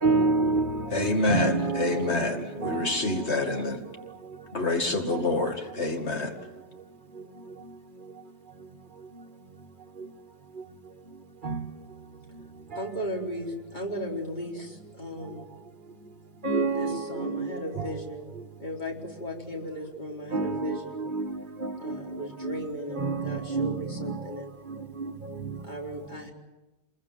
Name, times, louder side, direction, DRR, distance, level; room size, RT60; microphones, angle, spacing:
voice 1, 0.0-3.3 5.0-5.5 11.4-11.7 12.7-12.9 16.4-18.0 20.3-22.6 22.9-24.2 24.7-25.6, right 3 dB, 50° right, 1.5 m, -29 dB
voice 2, 0.9-3.8 4.5-6.3, left 2 dB, 75° left, 2.6 m, -27 dB
voice 3, 12.7-15.4 16.7-18.3 18.6-21.0 21.8-24.5 25.6-26.3, equal, 40° left, 4.5 m, -36 dB
27.0 x 21.5 x 7.5 m
omnidirectional pair, 1.1 m